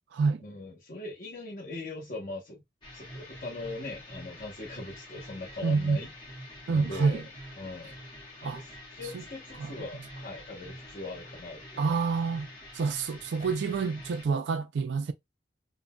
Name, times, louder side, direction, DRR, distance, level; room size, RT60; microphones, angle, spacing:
voice 1, 0.4-2.6 2.9-6.1 6.7-7.2 7.6-7.9 8.4-11.9, left 2 dB, 45° left, 0.8 m, -40 dB
sound 1, 2.8-14.3, left 1 dB, 25° left, 1.3 m, -46 dB
voice 2, 5.6-6.0 6.7-7.2 8.4-8.6 9.1-9.2 9.6-9.7 11.8-12.5 12.7-15.1, right 4 dB, 75° right, 0.3 m, -28 dB
3.8 x 2.1 x 2.2 m
head